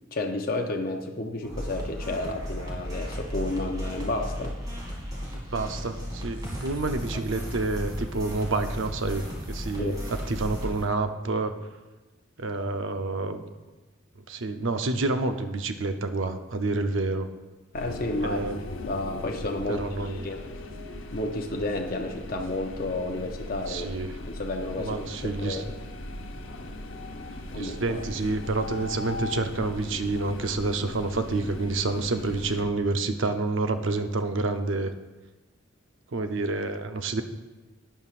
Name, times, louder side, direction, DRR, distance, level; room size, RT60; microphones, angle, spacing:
voice 1, 0.1-4.6 9.8-10.0 17.7-18.4 18.9-20.4 21.1-25.8 27.5-28.0, left 2 dB, 45° left, 2 dB, 0.7 m, -31 dB
sound 1, 1.4-10.8, equal, 20° right, 2.1 m, -35 dB
voice 2, 5.3-11.6 12.4-13.4 14.3-17.3 18.2-18.6 19.7-20.3 23.7-24.2 24.8-25.6 27.5-34.9 36.1-37.2, right 3 dB, 70° right, 8 dB, 0.7 m, -28 dB
sound 2, 17.7-32.6, left 2 dB, 70° left, 0.9 m, -38 dB
12.5 x 9.3 x 2.5 m, 1.1 s
head